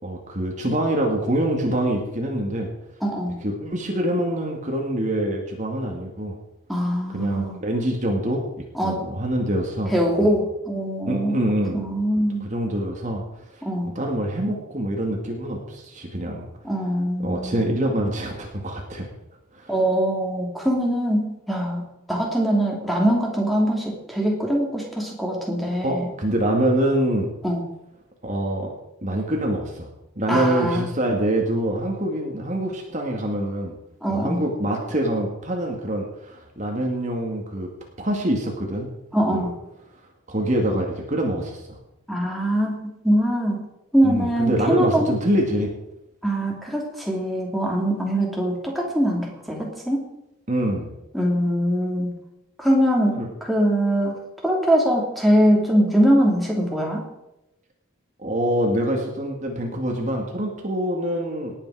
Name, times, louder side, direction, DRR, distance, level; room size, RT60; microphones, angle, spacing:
voice 1, 0.0-2.7 3.4-6.4 7.1-9.9 10.2-10.3 11.1-11.9 12.4-13.2 14.0-16.5 17.2-19.1 19.6-19.7 25.8-27.3 28.2-28.7 29.0-29.9 30.2-33.8 34.1-37.7 38.0-38.9 39.3-39.5 40.3-41.8 44.0-45.7 50.5-50.9 53.2-53.3 58.2-61.5, right 1 dB, 35° right, 0 dB, 2.2 m, -25 dB
voice 2, 3.0-3.4 6.7-7.6 8.7-9.0 9.9-11.4 11.7-12.5 13.6-13.9 16.6-17.6 19.7-21.8 22.1-26.1 27.4-27.6 30.3-30.9 34.0-34.4 39.1-39.5 42.1-43.7 43.9-45.1 46.2-50.0 51.1-52.1 52.6-54.2 54.4-57.0, equal, ahead, -2 dB, 2.9 m, -22 dB
18.5 x 9.0 x 4.9 m, 0.89 s
head